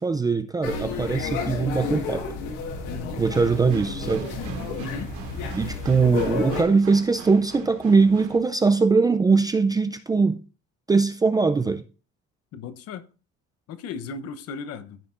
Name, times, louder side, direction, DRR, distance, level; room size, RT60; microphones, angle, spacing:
voice 1, 0.0-2.2 3.2-4.3 5.5-10.4 10.9-11.8, right 4 dB, 15° right, 0.4 m, -21 dB
sound 1, 0.6-6.6, left 4 dB, 85° left, 2.2 m, -31 dB
voice 2, 2.9-3.2 4.8-5.1 12.5-13.0 13.7-15.0, left 5 dB, 55° left, 0.9 m, -36 dB
sound 2, 3.2-8.4, right 8 dB, 80° right, 2.6 m, -41 dB
14.0 x 5.7 x 2.5 m
cardioid pair, 150°, 29 cm